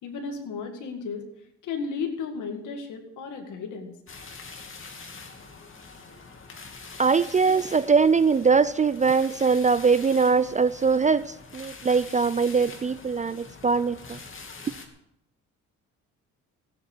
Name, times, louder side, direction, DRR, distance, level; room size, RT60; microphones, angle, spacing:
voice 1, 0.0-1.3 1.6-4.0, left 5 dB, 80° left, 2.2 m, -34 dB
sound 1, 4.1-14.9, left 4 dB, 45° left, 2.7 m, -44 dB
voice 2, 7.0-14.2, right 5 dB, 25° right, 0.4 m, -22 dB
16.0 x 8.2 x 7.2 m
cardioid pair, 90°, 30 cm